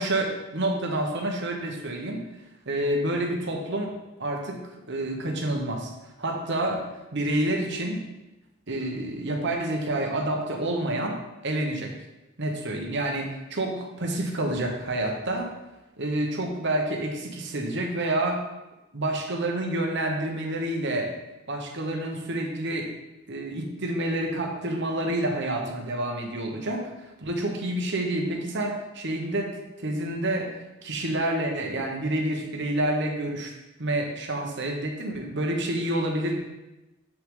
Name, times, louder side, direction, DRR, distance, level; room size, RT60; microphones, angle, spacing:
voice 1, 0.0-2.2 2.6-3.9 4.2-5.9 6.2-6.8 7.1-8.0 8.7-11.9 12.4-15.5 16.0-18.4 18.9-21.1 21.5-22.9 23.3-26.9 27.2-30.6 30.8-33.5 33.8-36.4, right 1 dB, 55° right, 2 dB, 1.2 m, -28 dB
7.9 x 5.9 x 3.8 m, 1.0 s
head